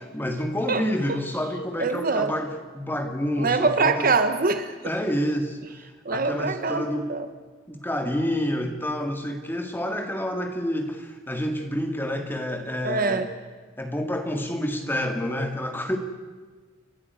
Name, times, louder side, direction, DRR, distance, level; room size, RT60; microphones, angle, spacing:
voice 1, 0.0-4.1 4.8-5.8 6.1-7.1 7.7-13.3 13.8-16.0, equal, 10° left, 5 dB, 2.1 m, -28 dB
voice 2, 1.8-2.3 3.4-4.7 6.0-7.3 12.8-13.3, right 4 dB, 45° right, 10 dB, 1.2 m, -24 dB
29.5 x 11.5 x 9.5 m, 1.4 s
head